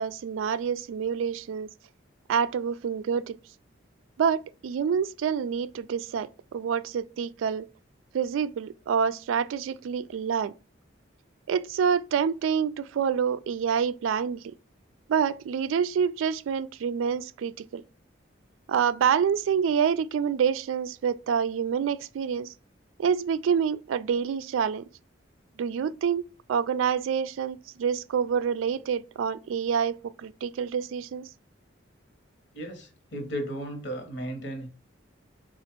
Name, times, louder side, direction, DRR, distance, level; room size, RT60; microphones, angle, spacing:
voice 1, 0.0-1.7 2.3-3.4 4.2-7.7 8.1-10.5 11.5-14.5 15.1-17.8 18.7-22.5 23.0-24.8 25.6-26.2 26.5-31.3, right 7 dB, 90° right, 0.3 m, -27 dB
voice 2, 32.5-34.7, right 1 dB, 60° left, 1.1 m, -35 dB
4.0 x 2.4 x 4.4 m
head